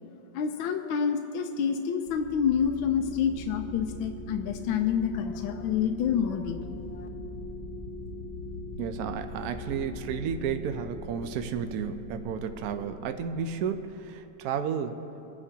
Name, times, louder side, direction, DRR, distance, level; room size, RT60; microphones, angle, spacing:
voice 1, 0.3-7.1, left 7 dB, 75° left, 4 dB, 1.3 m, -28 dB
sound 1, 2.1-14.3, left 2 dB, 25° right, 0.7 m, -41 dB
voice 2, 8.8-15.0, right 7 dB, 85° right, 8 dB, 0.8 m, -32 dB
28.5 x 9.6 x 2.8 m, 2.9 s
omnidirectional pair, 2.3 m